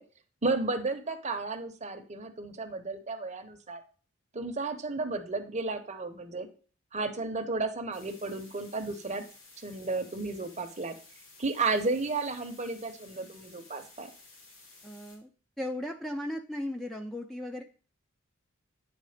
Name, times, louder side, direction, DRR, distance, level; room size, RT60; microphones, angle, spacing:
voice 1, 0.4-3.8 4.3-6.5 6.9-9.2 9.6-10.9 11.4-14.1, right 3 dB, 35° right, 8 dB, 0.9 m, -33 dB
sound 1, 7.9-15.2, left 3 dB, 75° left, 3.3 m, -55 dB
voice 2, 14.8-15.3 15.6-17.6, left 1 dB, ahead, 3 dB, 0.5 m, -36 dB
9.6 x 3.7 x 5.0 m, 0.39 s
head